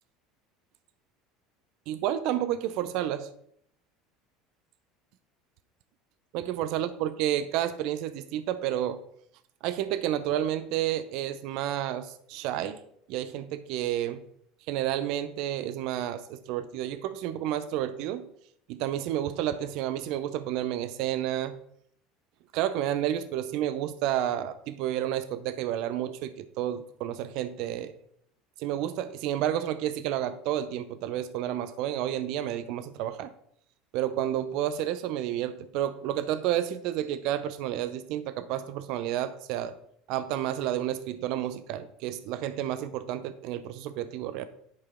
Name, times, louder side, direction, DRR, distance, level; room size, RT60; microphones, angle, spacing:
voice 1, 1.9-3.3 6.3-9.0 9.6-12.8 13.1-14.2 14.7-18.3 18.7-21.6 22.5-27.9 28.6-33.3 33.9-39.7 40.1-44.5, right 11 dB, 65° right, 13 dB, 0.6 m, -30 dB
11.0 x 4.6 x 3.6 m, 0.68 s
hypercardioid pair, 75°, 0 cm